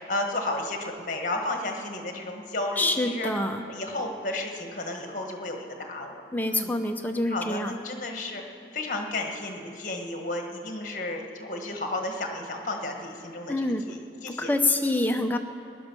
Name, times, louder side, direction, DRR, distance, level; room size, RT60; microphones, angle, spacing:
voice 1, 0.1-3.3 3.7-6.2 6.5-6.7 7.3-8.4 8.7-14.5, left 2 dB, 45° left, 3 dB, 1.5 m, -33 dB
voice 2, 2.8-3.6 6.3-7.8 13.5-13.8 14.3-15.4, left 2 dB, 10° left, 5 dB, 0.7 m, -26 dB
18.0 x 10.5 x 6.2 m, 2.6 s
head